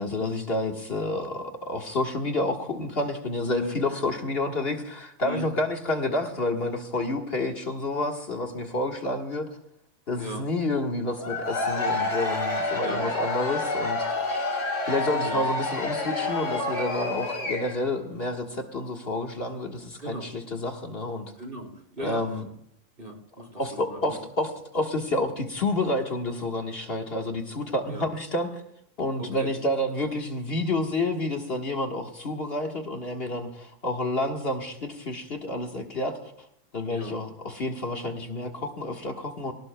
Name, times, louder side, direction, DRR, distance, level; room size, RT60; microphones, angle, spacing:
voice 1, 0.0-9.5 10.1-14.1 14.9-21.3 22.0-22.5 23.5-28.6 29.0-36.3 36.7-39.5, left 2 dB, 50° left, 2 dB, 1.6 m, -29 dB
Cheering / Crowd, 11.2-17.9, left 2 dB, 70° left, 3.0 m, -28 dB
voice 2, 21.4-22.2 23.0-23.6 23.9-24.1 27.9-28.1 29.2-29.5 36.9-37.2, equal, 45° right, 1 dB, 3.8 m, -37 dB
24.5 x 17.5 x 2.2 m, 0.72 s
omnidirectional pair, 1.3 m